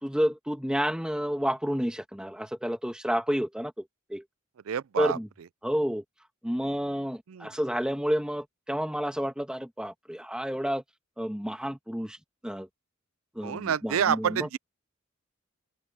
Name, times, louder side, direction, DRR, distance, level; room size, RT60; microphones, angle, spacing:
voice 1, 0.0-3.7 4.1-4.2 5.0-5.3 5.6-6.0 6.4-10.8 11.2-12.2 12.4-12.7 13.3-14.5, equal, 5° right, 1.5 m, -30 dB
voice 2, 4.7-5.2 7.3-7.5 13.4-14.6, right 8 dB, 90° right, 0.4 m, -28 dB
open air
head